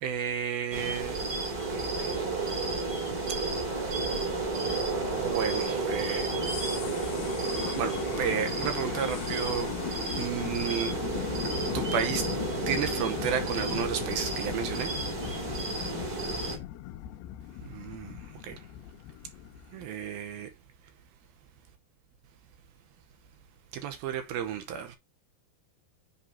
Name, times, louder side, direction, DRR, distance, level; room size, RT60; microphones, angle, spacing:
voice 1, 0.0-1.2 1.7-2.1 5.2-6.3 7.8-9.7 10.2-11.0 11.7-12.2 12.7-14.9 17.7-18.2 18.5-18.6 19.7-20.5 23.8-25.0, right 8 dB, 75° right, 2.4 m, -32 dB
sound 1, 0.7-16.6, right 3 dB, 25° right, 3.2 m, -32 dB
sound 2, 3.4-19.9, left 13 dB, 80° left, 2.7 m, -39 dB
7.6 x 6.6 x 2.8 m
omnidirectional pair, 5.0 m